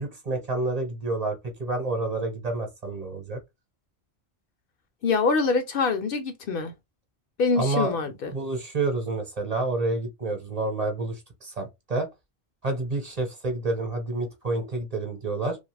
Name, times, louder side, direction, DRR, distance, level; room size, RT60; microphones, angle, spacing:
voice 1, 0.0-3.4 7.6-8.0 8.3-12.1 12.6-15.6, right 2 dB, 40° right, 1.0 m, -29 dB
voice 2, 5.0-6.7 7.4-8.3, left 4 dB, 65° left, 0.7 m, -25 dB
2.7 x 2.3 x 3.3 m
omnidirectional pair, 1.1 m